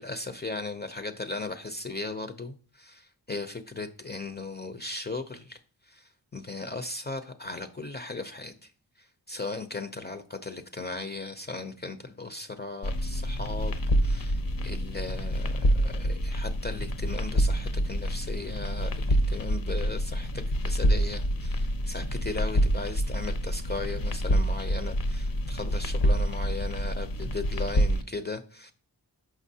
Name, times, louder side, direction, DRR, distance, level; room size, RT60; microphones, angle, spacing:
voice 1, 0.0-8.7 9.0-28.7, left 3 dB, 25° left, 9 dB, 0.5 m, -37 dB
sound 1, 12.8-28.0, equal, 55° left, 0.7 m, -27 dB
6.1 x 5.8 x 2.7 m, 0.40 s
wide cardioid pair, 115°, 40 cm